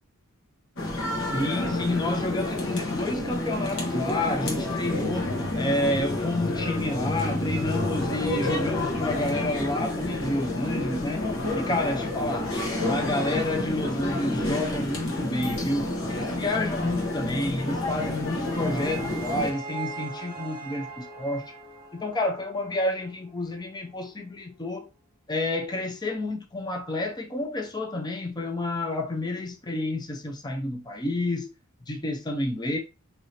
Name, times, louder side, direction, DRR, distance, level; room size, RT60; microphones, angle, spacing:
sound 1, 0.8-19.5, left 1 dB, 65° left, 1.2 m, -29 dB
voice 1, 1.3-12.5 12.8-21.5 21.9-24.9 25.3-31.5 31.9-32.8, left 1 dB, 20° left, 0.6 m, -29 dB
sound 2, 4.6-18.5, left 2 dB, 85° left, 0.9 m, -40 dB
sound 3, 18.2-23.3, right 4 dB, 20° right, 1.1 m, -40 dB
4.7 x 2.8 x 2.8 m
head